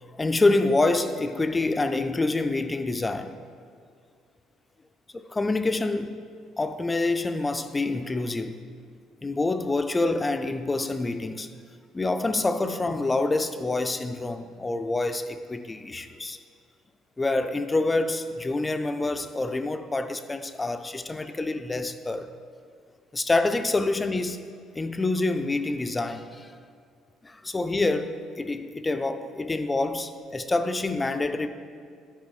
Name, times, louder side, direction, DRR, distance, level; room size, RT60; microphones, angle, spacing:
voice 1, 0.1-3.3 5.2-6.2 6.6-8.6 9.2-11.5 11.9-16.4 17.2-22.3 23.1-24.4 24.7-26.5 27.2-31.5, left 2 dB, 15° left, 0.3 m, -27 dB
9.3 x 4.8 x 4.4 m
cardioid pair, 130°, 0 cm